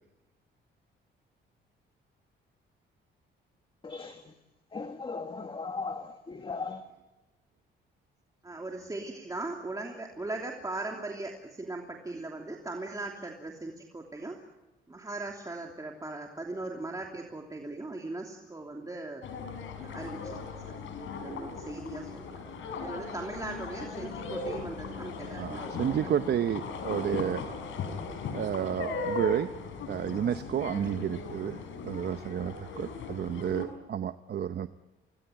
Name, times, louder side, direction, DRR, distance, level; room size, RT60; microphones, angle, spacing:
voice 1, 3.8-4.4 4.7-6.8, left 4 dB, 25° left, 1.8 m, -37 dB
voice 2, 8.4-14.4 14.9-19.2 19.8-20.4 20.6-20.8 21.1-22.4 22.8-26.1, right 2 dB, 15° right, 3.0 m, -39 dB
sound 1, 19.2-33.7, left 4 dB, 80° left, 5.8 m, -38 dB
voice 3, 25.4-27.4 28.3-29.5 29.9-34.7, right 9 dB, 55° right, 0.9 m, -31 dB
26.5 x 19.5 x 9.2 m
cardioid pair, 90°, 20 cm